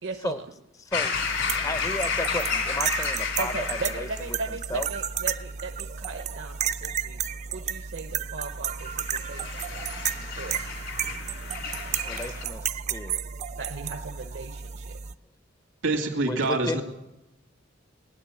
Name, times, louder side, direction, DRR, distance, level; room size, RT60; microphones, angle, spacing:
voice 1, 0.0-0.4 3.4-7.2 7.5-10.6 13.5-15.0, right 3 dB, 65° right, 5 dB, 0.8 m, -37 dB
voice 2, 0.8-1.2 1.5-4.9 12.1-13.2 16.3-16.8, left 2 dB, 15° left, 12 dB, 0.5 m, -34 dB
sound 1, 0.9-4.3 8.8-12.4, left 5 dB, 80° left, 2.5 m, -31 dB
sound 2, 1.1-15.1, right 8 dB, 35° right, 0.4 m, -33 dB
voice 3, 15.8-16.8, right 2 dB, 90° right, 4 dB, 2.4 m, -25 dB
18.5 x 9.5 x 7.1 m, 0.93 s
head